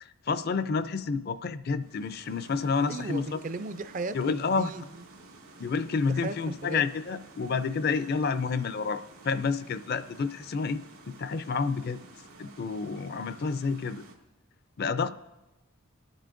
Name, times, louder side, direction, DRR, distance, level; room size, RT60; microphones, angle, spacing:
voice 1, 0.0-3.3 4.1-4.7 5.6-10.8 11.2-12.0 12.4-14.0 14.8-15.1, left 5 dB, 50° left, 13 dB, 0.4 m, -29 dB
sound 1, 1.8-14.1, right 2 dB, 85° right, 1.9 m, -52 dB
voice 2, 2.9-4.9 6.1-6.8, right 3 dB, 40° right, 12 dB, 0.4 m, -36 dB
24.0 x 9.2 x 2.6 m, 1.0 s
head